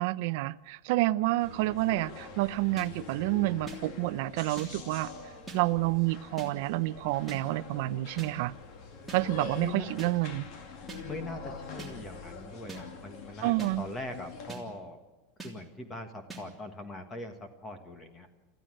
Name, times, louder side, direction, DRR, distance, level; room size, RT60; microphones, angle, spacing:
voice 1, 0.0-5.1 5.5-8.5 9.1-10.4 13.4-13.9, right 18 dB, 55° right, 0.6 m, -29 dB
sound 1, 1.4-14.5, left 4 dB, 40° left, 2.2 m, -45 dB
sound 2, 2.8-2.9 3.7-3.8 4.6-4.7 5.5-5.6 6.4-6.5 7.3-7.4 8.2-8.3 9.1-9.2 10.0-10.1 10.9-11.0 11.8-11.9 12.7-12.8 13.6-13.7 14.5-14.6 15.4-15.5 16.3-16.4, right 2 dB, ahead, 3.2 m, -42 dB
voice 2, 9.5-10.4 11.0-15.0 15.4-18.3, left 2 dB, 15° left, 1.5 m, -41 dB
27.0 x 14.5 x 7.7 m
supercardioid pair, 165°, 0 cm